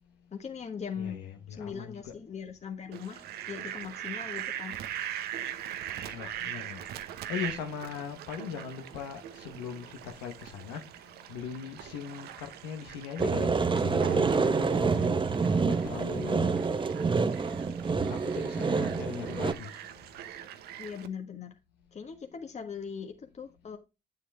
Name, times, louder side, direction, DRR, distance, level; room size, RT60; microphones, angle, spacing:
voice 1, 0.3-1.2 1.5-4.8 20.8-21.6 21.9-23.8, left 7 dB, 45° left, 1.5 m, -40 dB
voice 2, 0.9-2.1 6.1-10.8 11.3-16.6 17.3-17.7 18.0-19.8, left 7 dB, 85° left, 1.2 m, -40 dB
Fowl, 2.9-21.1, right 11 dB, 75° right, 0.9 m, -41 dB
sound 1, 13.2-19.5, right 4 dB, 30° right, 0.9 m, -27 dB
9.3 x 7.3 x 3.4 m
hypercardioid pair, 50°, 16 cm